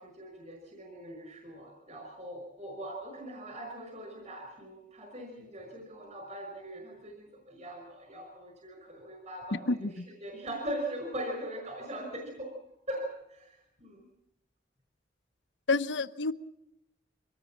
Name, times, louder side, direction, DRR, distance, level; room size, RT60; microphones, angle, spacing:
voice 1, 0.0-12.5 12.9-14.0, right 1 dB, 40° right, 2 dB, 5.4 m, -41 dB
voice 2, 15.7-16.3, left 3 dB, 85° left, 11 dB, 0.9 m, -28 dB
24.5 x 19.0 x 7.3 m, 0.79 s
head